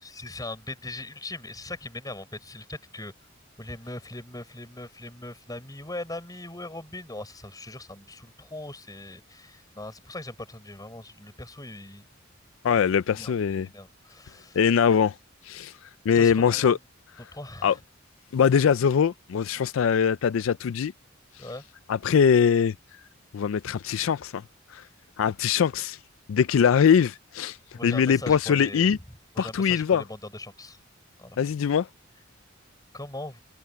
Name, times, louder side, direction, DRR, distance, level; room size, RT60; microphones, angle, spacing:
voice 1, 0.0-3.1 3.6-12.1 13.1-14.6 16.1-16.8 17.3-17.8 21.4-21.6 27.7-28.9 29.3-30.8 31.2-31.4 32.9-33.4, left 2 dB, 20° left, 6.6 m, -40 dB
voice 2, 12.6-13.7 14.5-15.2 15.4-15.7 16.1-16.8 17.6-17.7 18.3-20.9 21.4-21.5 21.9-22.7 23.3-24.4 24.7-24.8 25.2-26.0 26.3-27.6 27.8-29.0 29.4-30.0 31.4-31.9, left 7 dB, 75° left, 0.4 m, -22 dB
head